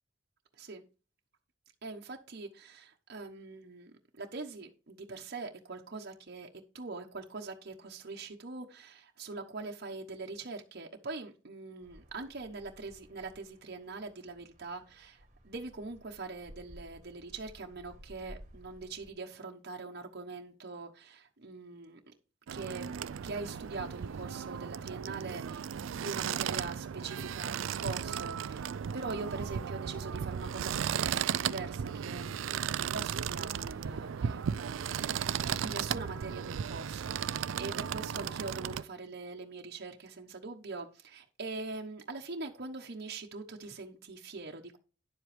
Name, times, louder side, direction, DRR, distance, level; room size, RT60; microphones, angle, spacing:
voice 1, 1.8-6.5 6.7-22.1 22.5-22.9 23.2-28.7 28.9-35.1 35.4-44.8, right 3 dB, 55° right, 1.1 m, -43 dB
sound 1, 11.8-19.1, equal, 40° right, 1.5 m, -55 dB
sound 2, 22.5-38.8, right 8 dB, 75° right, 0.4 m, -35 dB
10.5 x 7.6 x 3.4 m
head